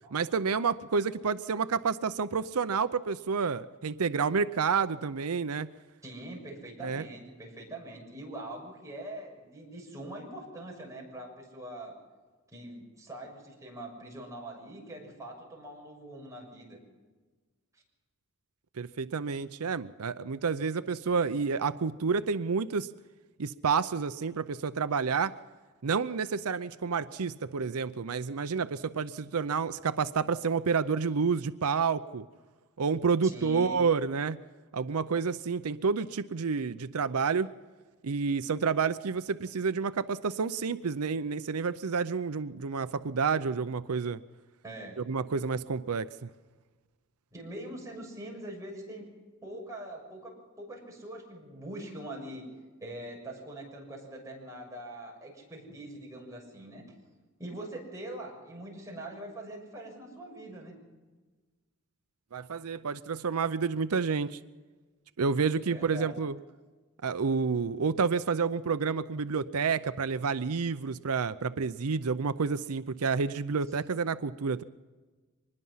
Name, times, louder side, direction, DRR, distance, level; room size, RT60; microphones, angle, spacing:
voice 1, 0.1-5.7 6.8-7.0 18.8-22.9 23.4-25.4 25.8-32.2 32.8-34.4 34.7-37.5 38.0-44.2 45.1-46.3 62.3-64.4 65.2-66.4 67.0-74.6, right 5 dB, 90° right, 13 dB, 0.6 m, -29 dB
voice 2, 6.0-12.0 12.5-16.8 17.7-17.8 33.2-33.8 44.6-45.0 47.3-49.1 49.4-52.5 52.8-56.9 57.4-60.7 65.7-66.2, right 1 dB, 15° right, -1 dB, 6.8 m, -43 dB
24.5 x 20.5 x 5.7 m, 1.3 s
head